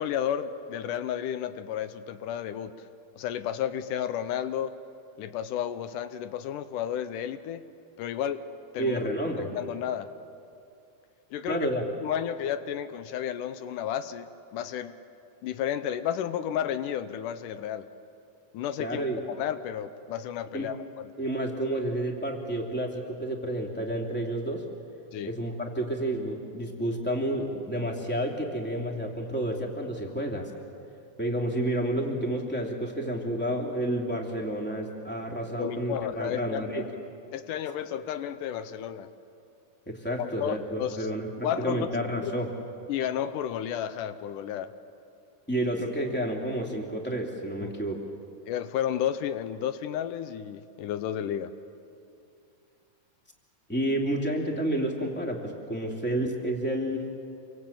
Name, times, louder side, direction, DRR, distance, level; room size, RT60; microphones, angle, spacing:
voice 1, 0.0-2.7 3.2-4.7 5.2-7.6 8.0-8.4 8.7-9.0 9.4-10.1 11.3-11.7 12.0-14.9 15.4-17.9 18.5-19.0 19.4-20.8 25.1-25.3 35.6-36.9 37.3-39.1 40.2-41.1 41.4-41.9 42.2-42.3 42.9-44.7 47.6-47.7 48.5-51.5, left 10 dB, 80° left, 12 dB, 2.4 m, -32 dB
voice 2, 8.8-9.5 11.5-11.8 18.8-19.2 20.5-20.7 21.2-24.6 25.2-30.5 31.2-36.8 39.9-42.5 45.5-48.0 53.7-57.1, right 1 dB, 5° left, 1 dB, 2.4 m, -30 dB
27.0 x 24.0 x 8.7 m, 2.6 s
omnidirectional pair, 3.7 m